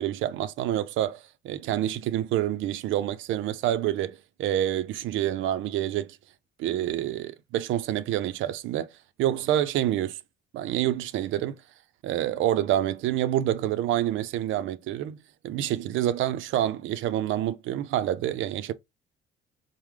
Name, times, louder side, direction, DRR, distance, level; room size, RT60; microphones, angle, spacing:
voice 1, 0.0-6.2 6.6-8.9 9.2-10.2 10.5-11.6 12.0-15.2 15.4-18.7, right 12 dB, 80° right, 0.5 m, -27 dB
4.6 x 2.1 x 3.6 m
cardioid pair, 130°, 20 cm